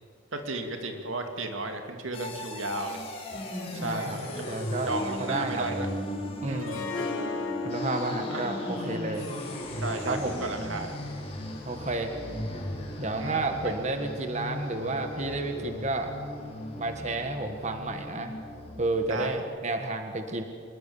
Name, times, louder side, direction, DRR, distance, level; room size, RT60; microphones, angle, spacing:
voice 1, 0.3-3.0 3.7-4.4 4.9-5.9 6.4-6.7 8.3-8.5 9.8-10.9 13.2-13.7 19.1-19.4, right 2 dB, 85° right, 4 dB, 2.5 m, -34 dB
sound 1, 2.1-19.4, left 1 dB, 30° left, 4.0 m, -37 dB
voice 2, 3.7-4.2 4.5-4.9 5.2-5.7 6.4-6.9 7.6-9.3 10.1-10.5 11.6-12.1 13.0-16.1 16.8-18.3 18.8-20.4, right 2 dB, 35° right, 5 dB, 1.7 m, -31 dB
Harp, 6.6-11.7, left 4 dB, 80° left, 3.8 m, -37 dB
25.5 x 21.0 x 7.2 m, 2.2 s
head